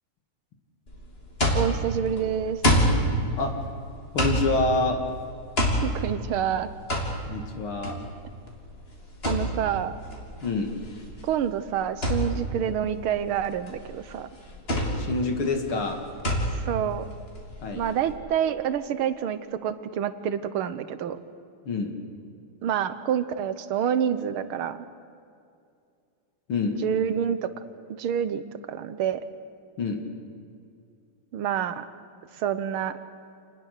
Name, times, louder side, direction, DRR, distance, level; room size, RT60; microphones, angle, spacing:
sound 1, 0.9-18.1, equal, 25° left, 3.3 m, -28 dB
voice 1, 1.5-2.6 5.8-6.7 9.3-9.9 11.2-14.3 16.5-17.1 17.8-21.2 22.6-24.8 26.8-27.5 28.0-29.2 31.3-31.9 32.3-33.0, right 9 dB, 75° right, 12 dB, 1.8 m, -27 dB
voice 2, 4.1-5.0 7.3-8.0 10.4-10.7 14.9-16.0 17.6-17.8 21.6-21.9 26.5-26.8 29.8-30.0, left 3 dB, 70° left, 3 dB, 2.8 m, -26 dB
28.0 x 19.5 x 6.6 m, 2.4 s
omnidirectional pair, 2.4 m